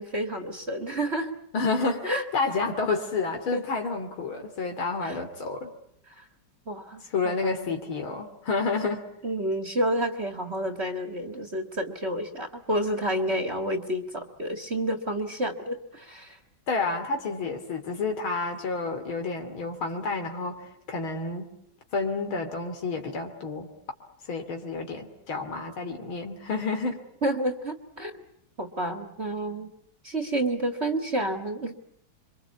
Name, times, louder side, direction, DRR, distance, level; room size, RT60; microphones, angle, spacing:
voice 1, 0.0-1.3 2.0-2.2 3.5-3.6 5.0-5.2 6.2-6.3 6.7-7.7 9.2-16.4 27.2-28.2 28.6-29.7 30.0-31.8, right 1 dB, 35° right, 7 dB, 2.0 m, -30 dB
voice 2, 1.5-5.7 7.1-9.0 16.7-21.5 21.9-23.7 24.2-27.0, left 4 dB, 85° left, 4 dB, 3.6 m, -30 dB
28.0 x 24.5 x 8.4 m, 0.71 s
omnidirectional pair, 2.2 m